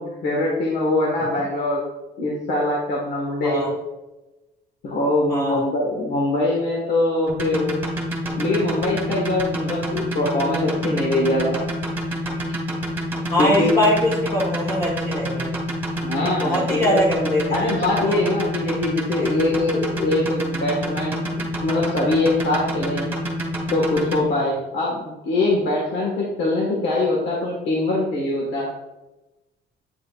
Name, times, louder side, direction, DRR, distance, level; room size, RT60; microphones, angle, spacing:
voice 1, 0.0-1.8 2.2-3.7 4.8-7.8 8.3-11.6 12.5-12.6 13.4-13.8 16.0-17.0 17.5-23.1 23.7-28.7, left 2 dB, 70° left, -3 dB, 1.7 m, -23 dB
voice 2, 5.3-5.6 13.3-15.5 16.4-17.7 18.0-18.2 19.2-19.3 24.3-24.6, left 1 dB, 20° left, -3 dB, 1.3 m, -22 dB
sound 1, 7.3-24.2, right 1 dB, 10° right, 1.8 m, -27 dB
8.8 x 6.7 x 2.5 m, 1.0 s
cardioid pair, 145°, 19 cm